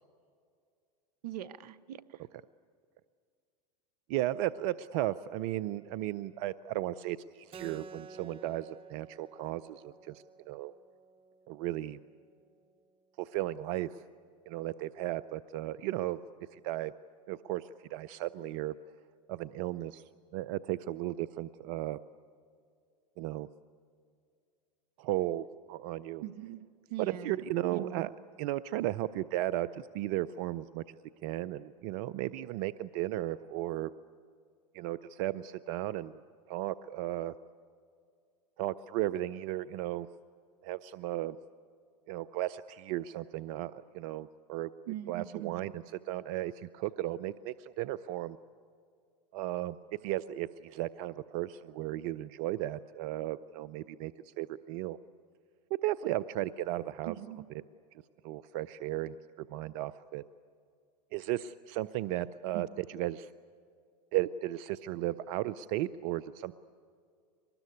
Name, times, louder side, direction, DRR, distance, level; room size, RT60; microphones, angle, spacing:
voice 1, 1.2-2.2 26.2-27.4 27.7-28.1 44.9-45.6 57.1-57.5 62.5-62.6, right 13 dB, 75° right, 16 dB, 0.9 m, -41 dB
voice 2, 4.1-10.7 11.5-12.0 13.2-14.0 14.5-16.2 16.5-16.9 17.3-18.8 19.3-20.0 20.3-22.0 23.2-23.5 25.0-26.2 27.0-28.1 28.4-30.8 31.2-33.9 34.7-36.2 36.5-37.3 38.6-40.1 40.6-41.4 42.1-48.4 49.3-49.8 50.0-55.0 55.8-57.1 58.2-60.2 61.1-63.3 64.1-66.5, right 15 dB, 55° right, 17 dB, 0.6 m, -35 dB
Keyboard (musical), 7.5-12.6, right 4 dB, 25° right, 1.0 m, -52 dB
23.5 x 20.0 x 9.6 m, 2.3 s
hypercardioid pair, 100°, 21 cm